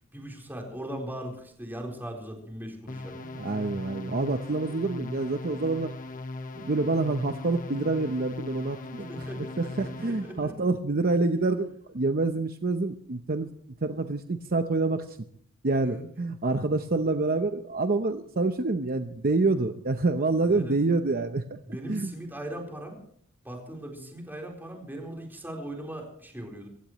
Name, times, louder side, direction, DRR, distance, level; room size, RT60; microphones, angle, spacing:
voice 1, 0.1-3.2 9.1-10.6 15.7-16.0 20.4-20.7 21.7-23.0 23.4-26.7, right 1 dB, 10° right, 0 dB, 4.1 m, -39 dB
sound 1, 2.9-10.4, left 2 dB, 40° left, 1.2 m, -39 dB
voice 2, 3.1-5.9 6.5-9.3 9.6-13.5 13.8-15.2 15.6-21.6 21.9-22.1, right 3 dB, 45° right, 7 dB, 0.8 m, -27 dB
24.5 x 16.0 x 3.1 m, 0.64 s
head